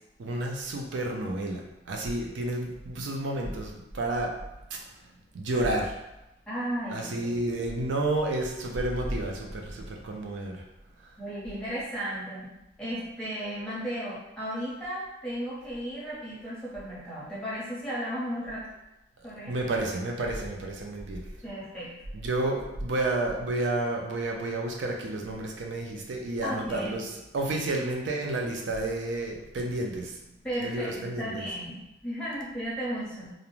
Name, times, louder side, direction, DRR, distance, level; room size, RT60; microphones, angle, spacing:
voice 1, 0.2-1.6 1.9-4.3 4.7-4.8 5.3-6.0 6.9-10.6 19.5-21.2 22.1-27.1 27.3-30.1 30.6-31.5, right 2 dB, 85° right, 1 dB, 0.4 m, -30 dB
voice 2, 6.5-7.4 11.2-12.5 12.8-18.7 19.2-19.5 21.4-21.9 26.4-26.9 30.4-33.3, equal, 5° left, -9 dB, 0.7 m, -35 dB
2.5 x 2.0 x 3.0 m, 0.93 s
head